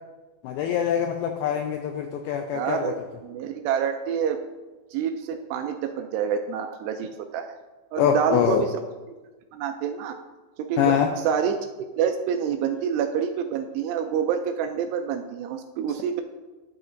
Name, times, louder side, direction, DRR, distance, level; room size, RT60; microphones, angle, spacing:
voice 1, 0.4-2.9 8.0-8.7 10.8-11.1, left 8 dB, 90° left, 4 dB, 2.2 m, -24 dB
voice 2, 2.5-3.0 3.2-4.4 4.9-7.6 7.9-8.8 9.5-10.2 10.6-11.0 11.2-11.6 12.0-16.2, right 8 dB, 85° right, 7 dB, 2.4 m, -27 dB
12.0 x 7.9 x 2.6 m, 1.2 s
omnidirectional pair, 5.0 m